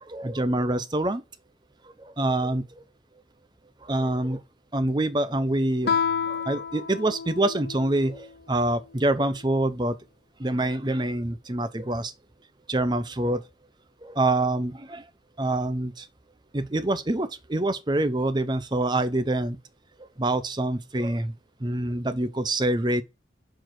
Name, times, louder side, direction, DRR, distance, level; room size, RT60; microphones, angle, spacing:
voice 1, 0.0-1.2 2.0-2.8 3.8-4.4 4.7-6.0 6.3-10.0 10.4-12.1 12.7-13.4 14.0-15.0 15.4-16.1 16.5-19.6 20.2-21.3 21.6-23.0, right 1 dB, 25° right, 0.6 m, -26 dB
Guitar, 5.8-8.3, left 6 dB, 65° left, 0.6 m, -29 dB
6.8 x 4.6 x 5.9 m
head